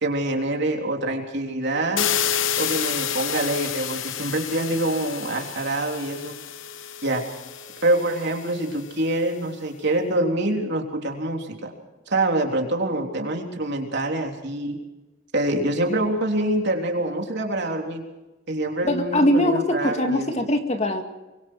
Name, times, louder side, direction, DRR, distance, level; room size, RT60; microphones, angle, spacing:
voice 1, 0.0-2.1 2.6-6.3 7.0-7.2 7.8-11.7 12.1-14.8 15.3-18.0 18.5-20.3, right 1 dB, 60° right, 2 dB, 3.6 m, -25 dB
sound 1, 2.0-8.8, left 8 dB, 70° left, 1.2 m, -29 dB
voice 2, 18.8-21.0, left 1 dB, 35° left, 5 dB, 2.1 m, -22 dB
24.5 x 23.0 x 4.8 m, 1.1 s
head